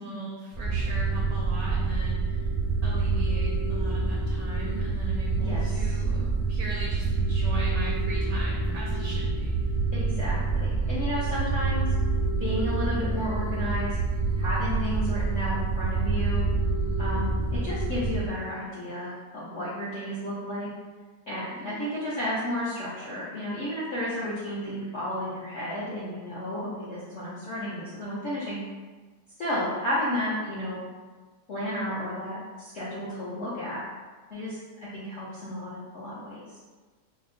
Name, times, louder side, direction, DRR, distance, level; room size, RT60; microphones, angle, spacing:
voice 1, 0.0-2.5 2.8-9.7 21.5-21.9, right 1 dB, 70° right, -4 dB, 0.8 m, -40 dB
sound 1, 0.5-18.3, right 3 dB, 40° right, 0.4 m, -27 dB
voice 2, 5.4-6.0 9.9-11.9 12.4-14.0 14.4-16.4 17.0-20.7 21.3-28.6 29.4-30.8 31.5-33.8 34.3-36.5, left 1 dB, 70° left, -9 dB, 0.6 m, -32 dB
4.3 x 2.0 x 2.5 m, 1.3 s
omnidirectional pair, 2.0 m